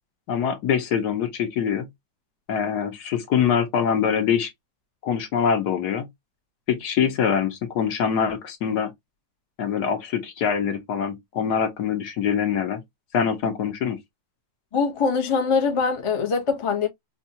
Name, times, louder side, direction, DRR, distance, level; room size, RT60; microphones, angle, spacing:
voice 1, 0.3-1.9 2.5-4.5 5.0-6.1 6.7-8.9 9.6-12.8 13.1-14.0, left 7 dB, 65° left, 1.3 m, -24 dB
voice 2, 14.7-16.9, left 5 dB, 35° left, 0.5 m, -23 dB
4.4 x 2.3 x 2.7 m
omnidirectional pair, 2.0 m